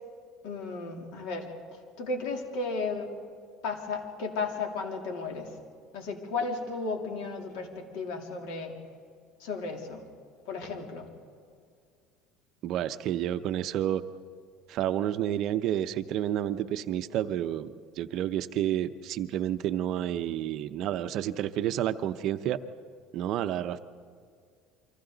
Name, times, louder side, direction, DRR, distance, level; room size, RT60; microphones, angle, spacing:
voice 1, 0.4-1.5 2.0-3.1 3.6-5.5 5.9-8.7 9.4-10.0 10.5-11.1, left 3 dB, 75° left, 2 dB, 3.1 m, -34 dB
voice 2, 12.6-14.0 14.7-22.6 23.1-23.8, right 11 dB, 45° right, 11 dB, 0.6 m, -30 dB
29.5 x 24.5 x 4.0 m, 2.2 s
cardioid pair, 170°, 0 cm